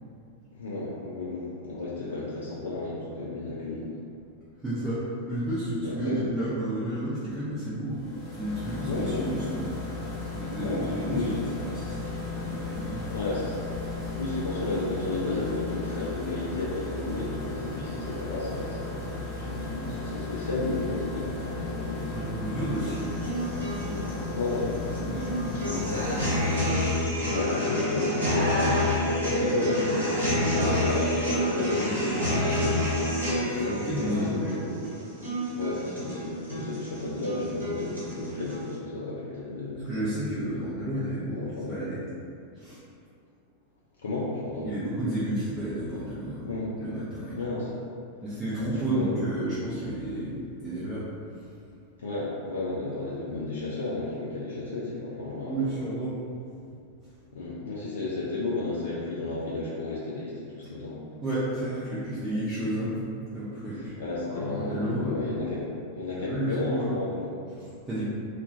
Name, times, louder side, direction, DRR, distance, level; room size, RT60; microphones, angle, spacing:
voice 1, 0.5-3.9 5.8-6.2 8.8-9.3 10.6-11.4 13.1-13.6 14.1-22.1 23.9-24.0 24.3-24.8 25.5-26.1 27.2-32.2 33.3-34.7 35.5-39.8 40.4-40.5 41.3-41.7 44.0-44.7 46.4-46.7 47.3-47.8 48.9-49.2 52.0-55.7 57.3-61.0 64.0-65.7 65.9-67.3, left 2 dB, 65° left, -7 dB, 0.3 m, -32 dB
voice 2, 4.6-8.0 8.3-9.7 10.3-13.2 14.0-14.2 22.1-24.3 25.0-26.3 33.4-33.5 33.8-34.6 39.8-42.0 42.5-42.8 44.6-47.5 48.2-51.6 55.5-56.1 57.0-57.1 61.2-64.0 64.3-65.3 66.3-66.9 67.5-68.0, right 1 dB, 15° right, -12 dB, 0.5 m, -32 dB
sound 1, 7.9-27.3, left 3 dB, 30° left, 0.8 m, -36 dB
sound 2, 22.7-38.7, left 1 dB, 80° right, 0.7 m, -28 dB
2.3 x 2.1 x 2.6 m, 2.4 s
figure-of-eight pair, 90°, 0 cm